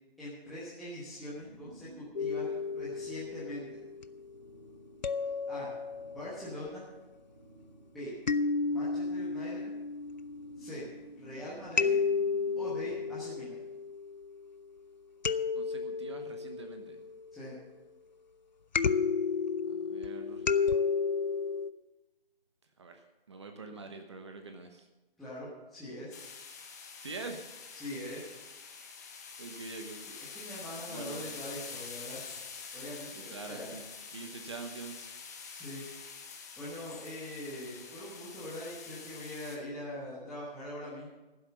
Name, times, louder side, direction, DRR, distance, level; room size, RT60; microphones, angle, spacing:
voice 1, 0.2-3.8 5.5-5.7 6.1-6.9 7.9-8.1 8.6-9.7 10.6-10.8 11.2-11.9 12.6-13.6 17.3-17.6 25.2-26.2 27.7-28.2 30.0-32.2 32.7-33.7 35.5-35.8 36.6-41.1, left 1 dB, ahead, -12 dB, 1.1 m, -42 dB
sound 1, 1.2-13.2, right 2 dB, 55° right, 5.6 m, -56 dB
sound 2, 2.2-4.2 5.0-6.5 8.3-11.2 11.8-14.4 15.2-17.5 18.8-21.7, left 5 dB, 50° left, 0.5 m, -32 dB
voice 2, 15.6-17.0 19.7-20.4 22.8-24.9 27.0-27.4 29.4-30.0 30.9-31.3 33.1-35.1, right 3 dB, 30° right, 6 dB, 1.0 m, -45 dB
Wind Blowing Leaves in Tree, 26.1-39.6, left 5 dB, 15° left, 1.0 m, -46 dB
15.0 x 7.9 x 7.0 m, 1.1 s
figure-of-eight pair, 155°, 29 cm